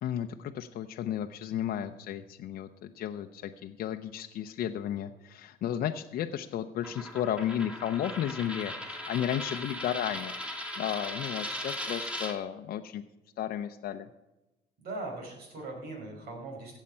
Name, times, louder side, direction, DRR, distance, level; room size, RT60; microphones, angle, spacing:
voice 1, 0.0-10.3 10.8-13.0 13.4-14.1, left 10 dB, 60° left, 5 dB, 0.7 m, -33 dB
Coin (dropping), 6.8-12.3, left 1 dB, 5° right, 2.1 m, -38 dB
voice 2, 14.8-16.8, right 2 dB, 70° right, 1 dB, 5.4 m, -40 dB
16.0 x 7.4 x 5.6 m, 1.0 s
cardioid pair, 110°, 17 cm